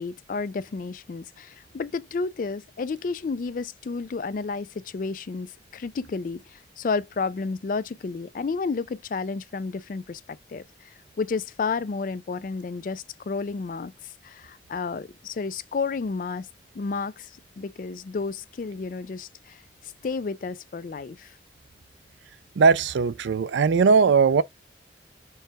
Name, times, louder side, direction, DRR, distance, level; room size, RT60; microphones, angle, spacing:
voice 1, 0.0-16.5 16.7-21.4, left 4 dB, 45° left, 0.3 m, -31 dB
voice 2, 22.6-24.4, right 5 dB, 80° right, 0.4 m, -19 dB
4.6 x 2.1 x 4.7 m
head